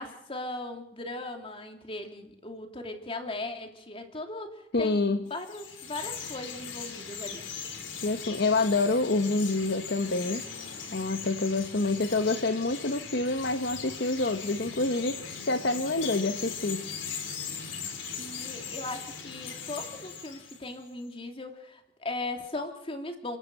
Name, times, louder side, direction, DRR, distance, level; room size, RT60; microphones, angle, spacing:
voice 1, 0.0-7.5 18.2-23.4, left 2 dB, 30° left, 4 dB, 2.8 m, -38 dB
voice 2, 4.7-5.3 8.0-10.4 10.9-15.2 15.5-16.9, left 3 dB, 60° left, 7 dB, 1.2 m, -27 dB
Chirp tweet, 5.3-20.9, left 6 dB, 80° left, 3.4 m, -39 dB
29.5 x 11.0 x 7.9 m, 0.78 s
head